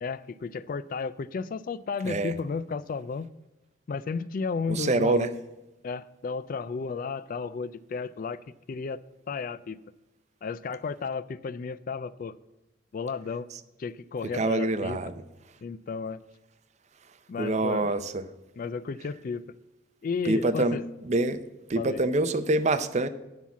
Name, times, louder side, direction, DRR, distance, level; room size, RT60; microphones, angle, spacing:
voice 1, 0.0-3.3 3.9-5.3 5.8-8.4 8.7-9.0 9.3-9.8 10.4-12.4 12.9-13.5 13.8-15.0 15.6-16.2 17.3-18.0 18.6-19.5 20.0-20.8 21.8-22.0, left 5 dB, 45° left, 0.3 m, -33 dB
voice 2, 4.7-5.3 14.3-15.1 17.4-18.2 20.2-20.8 21.0-21.4 21.7-23.1, right 2 dB, 35° right, 0.5 m, -25 dB
9.5 x 5.7 x 7.1 m
head